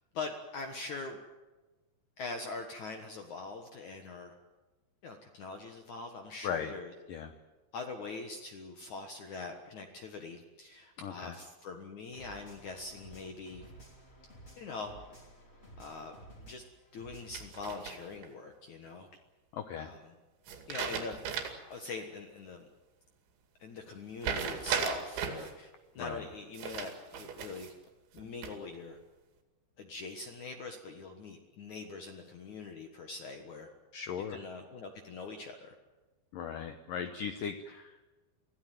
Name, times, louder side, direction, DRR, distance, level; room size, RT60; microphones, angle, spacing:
voice 1, 0.1-1.2 2.2-4.3 5.0-6.9 7.7-13.7 14.6-15.0 15.8-16.1 16.4-16.6 16.9-19.1 19.8-20.0 20.7-21.2 21.7-22.6 23.6-27.7 28.1-29.0 29.8-33.7 34.3-35.8, left 3 dB, 60° left, 4 dB, 2.1 m, -43 dB
voice 2, 11.0-11.4 19.5-19.9 26.0-26.3 33.9-34.4 36.3-38.1, left 7 dB, 85° left, 8 dB, 1.9 m, -38 dB
sound 1, 12.1-17.5, right 1 dB, 15° left, 2.8 m, -54 dB
sound 2, 17.3-18.3 20.5-21.7 22.1-22.2 24.2-25.5 26.5-27.7 28.2-28.8, right 7 dB, 80° right, 4.8 m, -36 dB
24.5 x 16.5 x 9.2 m, 1.2 s
omnidirectional pair, 5.3 m